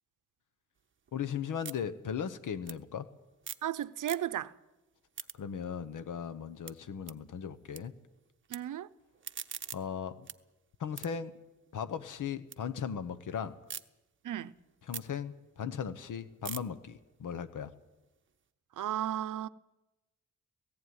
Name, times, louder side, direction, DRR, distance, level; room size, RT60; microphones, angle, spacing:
sound 1, 0.8-3.7 4.0-4.6 4.9-7.8 8.1-8.6 9.0-12.6 13.0-13.8 14.3-18.4, right 7 dB, 40° right, 0.7 m, -47 dB
voice 1, 1.1-3.1 5.4-7.9 9.7-10.3 10.8-11.4 11.7-13.6 14.8-17.7, left 7 dB, 80° left, 1.1 m, -37 dB
voice 2, 3.6-4.5 8.5-8.9 14.2-14.5 18.8-19.5, right 11 dB, 90° right, 0.7 m, -34 dB
17.5 x 15.5 x 9.5 m
wide cardioid pair, 105°, 31 cm